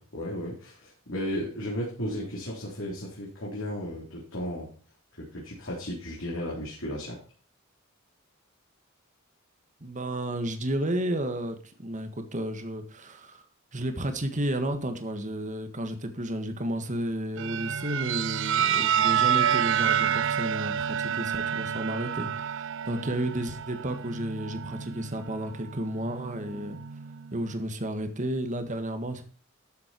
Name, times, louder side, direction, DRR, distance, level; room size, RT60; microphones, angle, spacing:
voice 1, 0.0-4.7 5.2-7.2, equal, 65° left, -4 dB, 4.1 m, -34 dB
voice 2, 9.8-13.4 13.7-26.8 27.3-29.2, right 1 dB, 35° right, 7 dB, 1.7 m, -32 dB
sound 1, 17.4-27.3, right 9 dB, 60° right, 0.5 m, -28 dB
13.0 x 7.7 x 4.6 m, 0.42 s
head